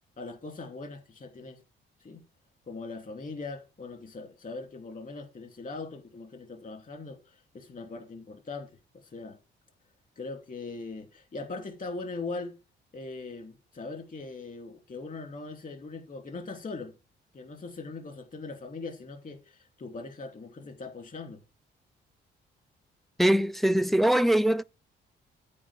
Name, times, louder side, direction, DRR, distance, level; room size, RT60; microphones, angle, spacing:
voice 1, 0.2-1.6 2.0-2.2 2.7-8.7 9.1-9.4 10.2-12.6 12.9-16.9 17.3-21.4, left 3 dB, 40° left, 2.7 m, -40 dB
voice 2, 23.2-24.6, right 1 dB, ahead, 0.4 m, -22 dB
8.7 x 4.5 x 7.2 m
cardioid pair, 90°, 20 cm